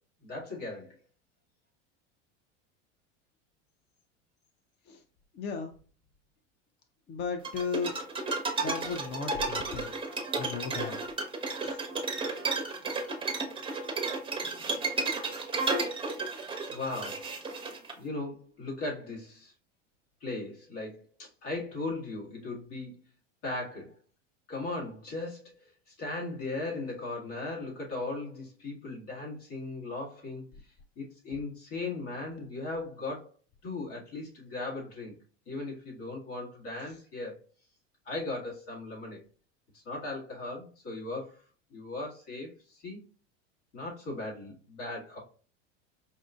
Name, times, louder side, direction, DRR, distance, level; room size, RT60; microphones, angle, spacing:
voice 1, 0.2-1.0 16.7-17.3 18.0-19.5 20.2-23.0 23.4-23.9 24.5-30.4 31.0-33.3 33.6-35.2 35.5-37.4 38.1-39.2 39.7-41.4 41.7-43.0 43.7-45.2, left 2 dB, 60° left, -3 dB, 1.9 m, -38 dB
voice 2, 5.3-5.7 7.1-7.9 8.6-9.9 10.4-11.0 11.6-11.8 36.8-37.0, left 5 dB, 30° left, 6 dB, 0.4 m, -35 dB
sound 1, 7.4-17.9, right 3 dB, 15° right, 0.8 m, -33 dB
5.3 x 2.4 x 2.3 m, 0.40 s
hypercardioid pair, 90°, 37 cm